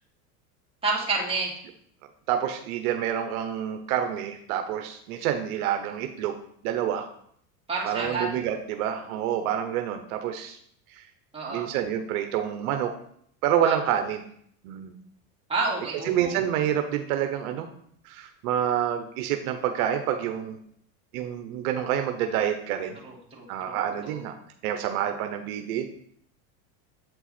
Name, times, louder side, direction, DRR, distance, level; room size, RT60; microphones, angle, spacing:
voice 1, 0.8-1.5 7.7-8.3 11.3-11.7 13.6-13.8 15.5-16.3 23.0-23.8 24.0-24.2, right 3 dB, 15° right, -4 dB, 2.5 m, -29 dB
voice 2, 2.3-6.4 6.6-7.1 7.8-10.6 10.9-11.0 11.5-13.0 13.4-14.2 14.6-14.9 16.0-17.7 18.0-20.6 21.1-23.0 23.5-24.4 24.6-25.9, right 10 dB, 75° right, 6 dB, 0.9 m, -28 dB
8.1 x 4.5 x 4.3 m, 0.65 s
supercardioid pair, 115°, 44 cm